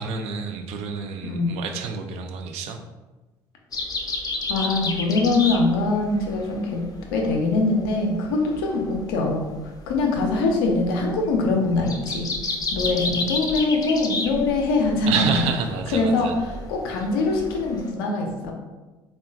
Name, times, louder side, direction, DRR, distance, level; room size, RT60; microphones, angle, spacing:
voice 1, 0.0-2.8 15.1-16.4, right 5 dB, 65° right, 5 dB, 0.4 m, -28 dB
voice 2, 1.2-1.5 4.5-6.8 7.1-12.3 12.7-15.6 15.9-18.5, left 3 dB, 85° left, 1 dB, 0.5 m, -23 dB
sound 1, 3.7-17.9, left 3 dB, 30° left, 0.5 m, -32 dB
3.7 x 2.3 x 2.3 m, 1.2 s
hypercardioid pair, 65°, 12 cm